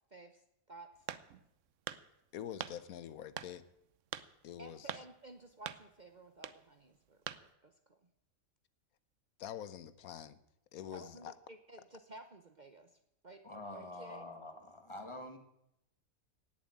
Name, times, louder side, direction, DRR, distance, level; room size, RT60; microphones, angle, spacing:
voice 1, 0.1-0.9 4.6-8.0 10.9-13.0 13.2-13.4 13.7-14.3, right 2 dB, 35° right, 7 dB, 1.0 m, -54 dB
sound 1, 1.1-1.5 1.9-2.0 2.6-2.8 3.4-3.5 4.1-4.3 4.9-5.1 5.7-5.8 6.4-6.6 7.3-7.4, right 10 dB, 65° right, 1.0 m, -42 dB
voice 2, 2.3-3.6 4.4-5.0 9.4-10.4 10.7-11.3, left 10 dB, 85° left, 15 dB, 1.3 m, -46 dB
voice 3, 13.4-15.4, left 1 dB, 20° left, 5 dB, 1.8 m, -46 dB
17.5 x 7.5 x 8.7 m, 0.81 s
omnidirectional pair, 1.5 m